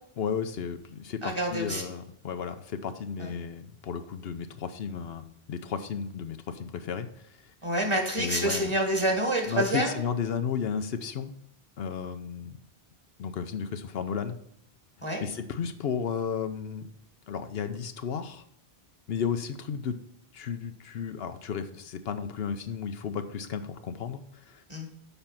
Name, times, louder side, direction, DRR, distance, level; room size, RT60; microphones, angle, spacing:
voice 1, 0.2-7.4 8.2-8.7 9.5-11.3 11.8-12.6 13.2-14.4 15.2-16.9 17.3-18.4 19.1-20.0 20.3-24.6, left 7 dB, 70° left, 9 dB, 0.9 m, -33 dB
voice 2, 1.2-1.9 3.2-3.3 7.6-10.0 15.0-15.2 24.7-24.9, right 1 dB, 30° right, 2 dB, 1.9 m, -28 dB
7.0 x 5.4 x 5.7 m, 0.74 s
omnidirectional pair, 1.1 m